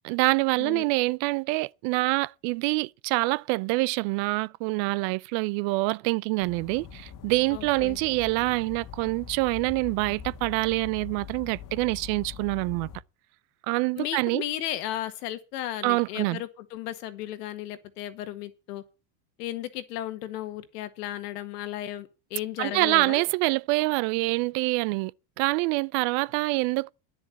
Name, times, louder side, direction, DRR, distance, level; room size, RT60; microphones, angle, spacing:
voice 1, 0.0-12.9 13.7-14.4 15.8-16.4 22.6-25.1 25.4-26.9, right 24 dB, 65° right, 0.5 m, -26 dB
voice 2, 0.6-0.9 7.5-8.0 14.0-18.8 19.4-23.2, left 13 dB, 90° left, 1.8 m, -35 dB
sound 1, 6.4-13.0, left 8 dB, 45° left, 1.4 m, -43 dB
10.5 x 7.2 x 8.2 m
supercardioid pair, 120°, 46 cm